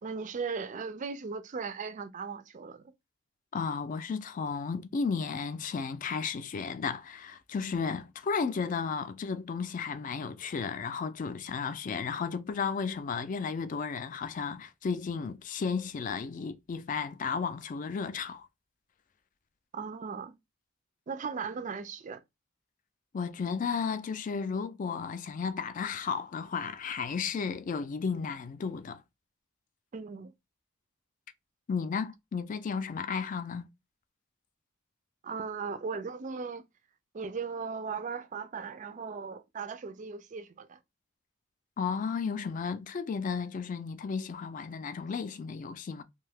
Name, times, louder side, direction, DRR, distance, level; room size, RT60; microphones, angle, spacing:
voice 1, 0.0-2.8 19.7-20.3 21.1-22.2 29.9-30.3 35.2-36.6 37.1-40.8, right 5 dB, 40° right, 0.3 m, -37 dB
voice 2, 3.5-18.5 23.1-29.0 31.7-33.7 41.8-46.0, left 5 dB, 40° left, 0.3 m, -33 dB
2.6 x 2.2 x 3.3 m
head